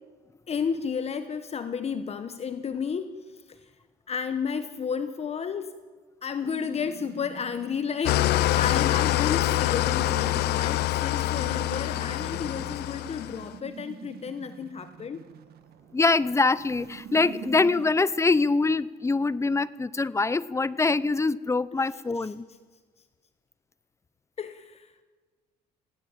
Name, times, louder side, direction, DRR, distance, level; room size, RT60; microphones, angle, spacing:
voice 1, 0.5-3.1 3.5-3.6 4.1-5.8 6.2-15.2 22.2-22.3 24.4-24.9, left 6 dB, 40° left, 11 dB, 1.1 m, -32 dB
sound 1, 6.4-17.9, right 7 dB, 65° right, 1.5 m, -44 dB
Engine starting / Idling, 8.0-13.5, left 16 dB, 75° left, 0.7 m, -25 dB
voice 2, 15.9-22.4, left 3 dB, 15° left, 19 dB, 0.7 m, -24 dB
19.0 x 17.5 x 9.0 m, 1.4 s
cardioid pair, 110°, 17 cm